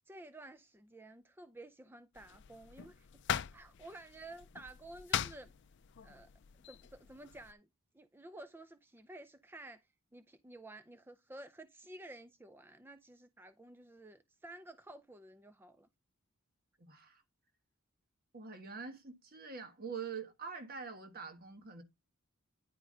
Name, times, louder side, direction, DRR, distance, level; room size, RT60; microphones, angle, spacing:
voice 1, 0.0-3.1 3.5-5.5 6.0-6.3 6.6-7.7 7.9-9.8 10.1-15.9, right 1 dB, 10° right, 0.4 m, -52 dB
sound 1, 2.1-7.5, left 9 dB, 55° left, 0.4 m, -41 dB
voice 2, 16.9-17.2 18.3-21.8, right 5 dB, 45° right, 1.4 m, -45 dB
10.0 x 4.9 x 3.8 m
head